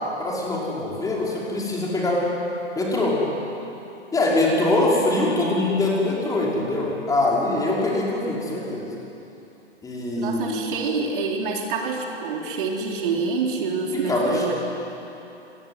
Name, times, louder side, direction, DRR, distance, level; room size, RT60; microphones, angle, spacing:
voice 1, 0.2-2.3 2.8-3.2 4.1-8.9 9.8-10.6 14.1-14.4, left 2 dB, 10° left, -4 dB, 5.5 m, -23 dB
voice 2, 10.2-14.5, right 4 dB, 45° right, 1 dB, 3.8 m, -27 dB
26.5 x 21.0 x 9.4 m, 3.0 s
figure-of-eight pair, 125°, 35 cm